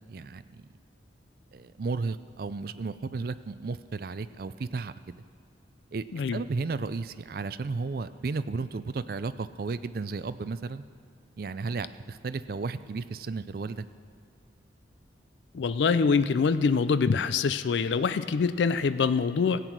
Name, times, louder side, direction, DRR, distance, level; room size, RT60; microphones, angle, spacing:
voice 1, 0.1-0.7 1.5-5.1 5.9-6.0 6.3-10.8 11.4-13.8, right 4 dB, 50° right, 13 dB, 0.4 m, -34 dB
voice 2, 15.5-19.6, left 5 dB, 75° left, 13 dB, 0.4 m, -25 dB
16.0 x 8.3 x 6.0 m, 2.4 s
head